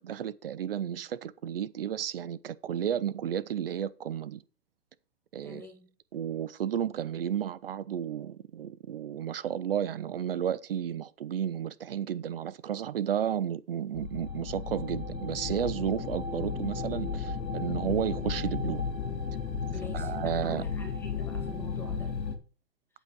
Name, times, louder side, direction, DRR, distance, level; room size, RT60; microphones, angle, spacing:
voice 1, 0.0-4.4 5.3-5.7 6.1-18.8 19.9-20.7, right 9 dB, 40° right, 0.4 m, -32 dB
voice 2, 5.4-5.9 19.7-22.2, left 3 dB, 5° left, 2.1 m, -46 dB
sound 1, 14.0-22.4, left 5 dB, 85° left, 2.1 m, -34 dB
8.7 x 8.2 x 4.5 m
hypercardioid pair, 145°, 49 cm